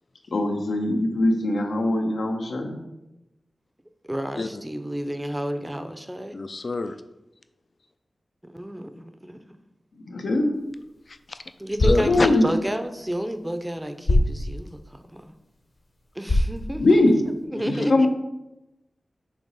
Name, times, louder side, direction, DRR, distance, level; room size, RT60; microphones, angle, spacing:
voice 1, 0.3-2.8 10.1-10.5 12.0-12.5 16.8-17.1 17.6-18.1, left 2 dB, 90° left, 2 dB, 1.0 m, -21 dB
voice 2, 4.0-6.3 8.4-9.6 11.6-15.3 16.1-17.0 17.5-18.1, equal, 10° right, 8 dB, 0.5 m, -31 dB
voice 3, 6.3-7.0 11.1-11.4 11.8-12.3 17.5-17.9, left 3 dB, 50° left, 10 dB, 0.4 m, -27 dB
sound 1, 10.5-17.4, left 1 dB, 65° left, 1.4 m, -28 dB
7.1 x 3.0 x 5.5 m, 0.92 s
wide cardioid pair, 110°, 0 cm